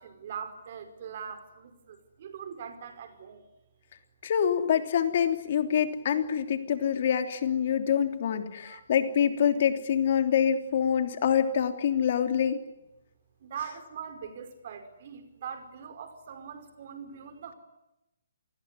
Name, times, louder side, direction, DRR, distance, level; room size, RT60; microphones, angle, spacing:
voice 1, 0.0-3.4 8.6-8.8 13.4-17.5, right 7 dB, 45° right, 8 dB, 5.0 m, -42 dB
voice 2, 4.2-12.6, left 8 dB, 50° left, 7 dB, 3.1 m, -26 dB
28.0 x 20.5 x 9.8 m, 0.93 s
hypercardioid pair, 150°, 0 cm